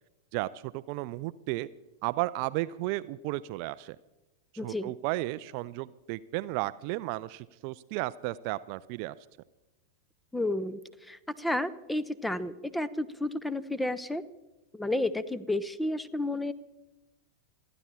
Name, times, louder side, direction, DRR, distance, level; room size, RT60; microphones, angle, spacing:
voice 1, 0.3-1.7 2.0-4.0 4.6-9.1, right 18 dB, 45° right, 16 dB, 0.4 m, -33 dB
voice 2, 4.6-4.9 10.3-14.2 14.7-16.5, left 1 dB, 5° left, 17 dB, 0.7 m, -31 dB
28.0 x 11.0 x 4.3 m, 1.1 s
figure-of-eight pair, 90°, 0 cm